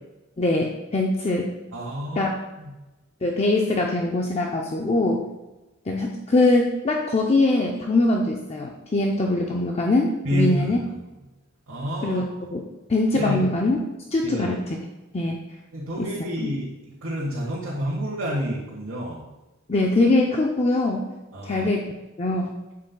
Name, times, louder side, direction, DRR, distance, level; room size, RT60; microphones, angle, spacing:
voice 1, 0.4-1.5 2.2-2.3 3.2-5.2 5.9-10.8 12.0-12.6 12.9-13.8 14.1-14.8 15.1-15.4 16.0-16.1 16.4-16.5 19.7-21.1 21.4-21.8 22.2-22.5, left 2 dB, 30° left, 0 dB, 0.6 m, -22 dB
voice 2, 1.7-2.7 10.2-10.7 11.7-12.2 13.1-13.4 14.2-14.5 15.7-16.7 17.0-19.2 21.3-21.7, equal, 90° right, -6 dB, 1.5 m, -28 dB
7.8 x 7.5 x 2.3 m, 1.1 s
head